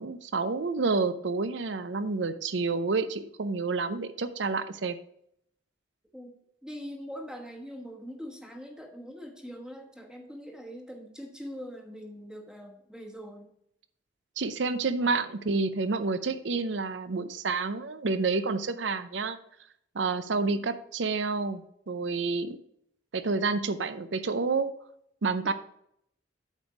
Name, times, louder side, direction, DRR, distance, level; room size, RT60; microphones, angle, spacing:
voice 1, 0.0-5.0 14.4-19.4 19.9-22.6 23.1-24.7 25.2-25.5, right 4 dB, 70° right, 12 dB, 0.6 m, -29 dB
voice 2, 6.6-13.5 15.0-15.2 25.4-25.5, equal, 5° right, 2 dB, 1.2 m, -43 dB
8.3 x 5.3 x 4.8 m, 0.73 s
head